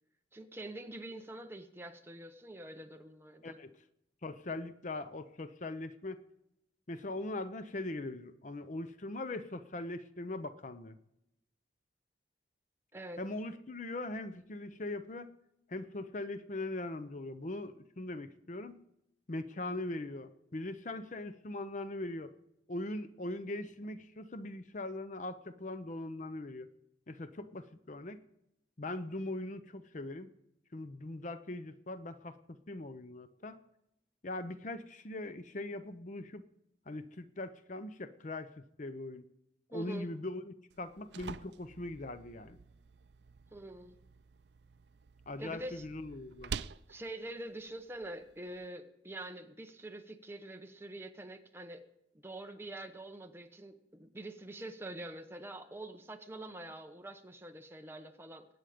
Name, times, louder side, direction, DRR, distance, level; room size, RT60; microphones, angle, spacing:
voice 1, 0.3-3.6 12.9-13.2 39.7-40.1 43.5-44.0 45.4-45.8 46.9-51.8 52.2-58.5, right 1 dB, 15° right, 5 dB, 1.0 m, -45 dB
voice 2, 3.4-3.8 4.2-6.2 6.9-11.0 13.2-15.3 15.7-18.8 19.3-22.3 22.7-26.7 27.1-28.2 28.8-30.3 30.7-33.6 34.2-36.4 36.9-39.3 39.7-42.6 45.3-46.5, left 2 dB, 45° left, 11 dB, 0.7 m, -41 dB
sound 1, 40.7-48.7, right 6 dB, 70° right, 0.5 m, -48 dB
21.5 x 9.1 x 5.1 m, 0.83 s
head